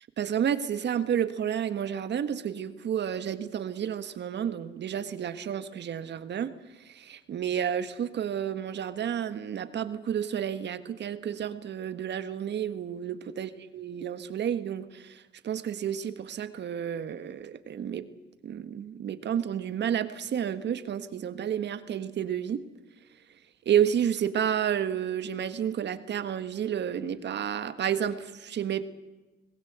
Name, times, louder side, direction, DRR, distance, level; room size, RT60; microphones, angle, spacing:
voice 1, 0.2-6.5 6.8-18.0 18.4-22.6 23.6-28.8, right 9 dB, 60° right, 12 dB, 1.6 m, -31 dB
26.0 x 19.5 x 8.2 m, 1.1 s
cardioid pair, 90°, 20 cm